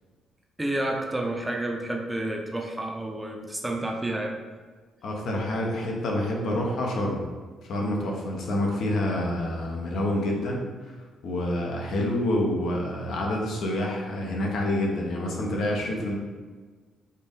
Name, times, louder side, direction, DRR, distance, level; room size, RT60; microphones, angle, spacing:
voice 1, 0.6-4.4, right 1 dB, 10° right, 0 dB, 0.6 m, -30 dB
voice 2, 5.0-7.2 7.6-11.0 11.2-16.1, left 1 dB, 70° left, -1 dB, 0.8 m, -27 dB
4.4 x 2.5 x 3.5 m, 1.4 s
cardioid pair, 90°, 0 cm